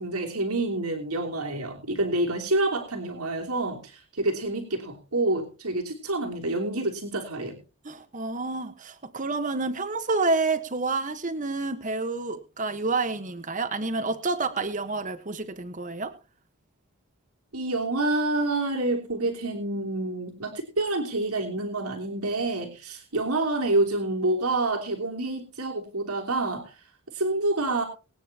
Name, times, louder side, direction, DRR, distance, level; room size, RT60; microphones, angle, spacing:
voice 1, 0.0-7.6 17.5-26.7 27.1-27.8, right 2 dB, 85° right, 2 dB, 3.1 m, -28 dB
voice 2, 7.8-16.1, right 3 dB, 35° right, 10 dB, 1.2 m, -29 dB
22.0 x 9.5 x 2.9 m, 0.32 s
head